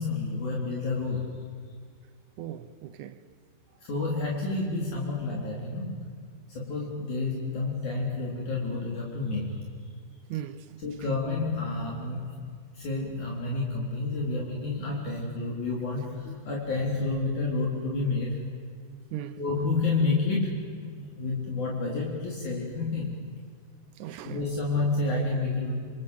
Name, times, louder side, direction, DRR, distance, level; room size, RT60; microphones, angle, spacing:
voice 1, 0.0-1.4 3.8-6.1 6.5-9.6 10.8-12.4 12.7-18.4 19.4-20.9 21.2-23.2 24.2-25.8, left 3 dB, 55° left, 5.2 m, -29 dB
voice 2, 2.4-3.2 10.3-10.8 19.1-19.4 24.0-24.4, right 11 dB, 70° right, 2.0 m, -38 dB
27.5 x 27.0 x 8.0 m
omnidirectional pair, 4.1 m